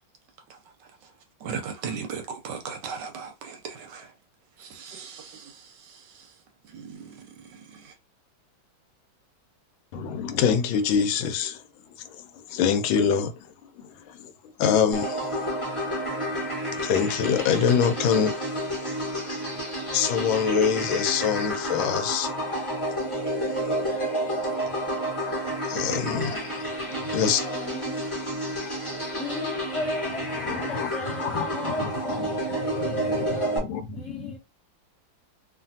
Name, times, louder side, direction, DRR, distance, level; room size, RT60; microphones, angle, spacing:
voice 1, 1.4-4.1 4.6-5.6 6.7-7.0 7.8-7.9, right 6 dB, 75° right, 1.1 m, -36 dB
voice 2, 9.9-11.6 12.0-13.5 13.8-14.3 14.6-15.3 16.8-18.3 19.9-22.3 23.2-23.8 25.7-26.3 27.1-27.4 30.3-30.9 31.2-31.9 32.2-32.4 32.8-34.3, left 7 dB, 85° left, 1.4 m, -25 dB
sound 1, 14.9-33.6, equal, 20° left, 1.1 m, -30 dB
voice 3, 25.8-28.4 29.1-33.2 33.9-34.4, left 3 dB, 50° left, 0.9 m, -37 dB
3.2 x 2.5 x 2.6 m
omnidirectional pair, 2.2 m